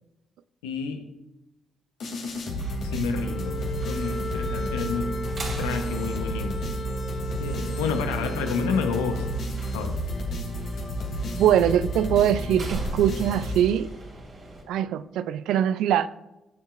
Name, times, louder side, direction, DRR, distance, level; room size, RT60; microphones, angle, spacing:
voice 1, 0.6-1.1 2.8-3.6 3.9-5.2 5.6-6.6 7.4-9.3 9.7-10.0, left 6 dB, 85° left, 1.0 m, -29 dB
sound 1, 2.0-14.1, right 1 dB, 65° left, 2.8 m, -31 dB
sound 2, 2.3-14.6, right 2 dB, 50° right, 2.9 m, -43 dB
Wind instrument woodwind instrument, 3.1-9.5, left 4 dB, 40° left, 0.7 m, -37 dB
voice 2, 11.3-13.9 14.7-16.1, right 10 dB, 75° right, 0.3 m, -22 dB
14.5 x 7.3 x 2.5 m
hypercardioid pair, 45°, 0 cm